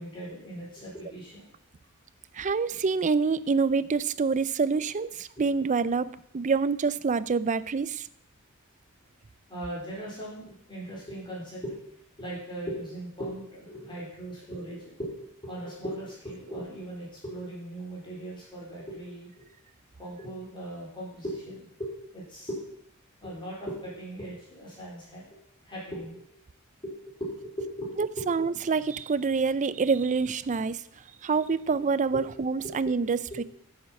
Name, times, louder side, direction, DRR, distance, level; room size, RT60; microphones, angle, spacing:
voice 1, 0.0-1.5 5.4-5.5 9.5-15.1 15.4-19.5 20.0-22.7 23.2-25.4 25.6-26.4 26.8-28.1 32.1-32.2 32.6-32.7 33.0-33.4, right 1 dB, 25° left, -6 dB, 4.2 m, -39 dB
voice 2, 2.3-8.1 28.0-30.8 31.2-33.4, right 4 dB, 35° right, 17 dB, 0.4 m, -26 dB
11.0 x 7.9 x 6.3 m, 0.69 s
head